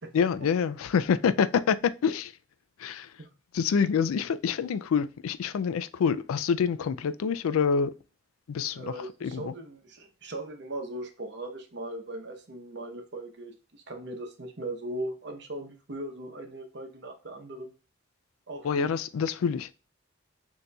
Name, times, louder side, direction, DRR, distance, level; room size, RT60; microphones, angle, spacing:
voice 1, 0.1-2.3 2.8-3.1 3.5-7.9 8.5-8.9 9.2-9.5 18.6-19.7, left 6 dB, 90° left, 0.4 m, -26 dB
voice 2, 8.7-13.5 13.9-17.7 18.5-18.9, right 1 dB, 55° right, 0.8 m, -39 dB
6.6 x 2.8 x 2.3 m
head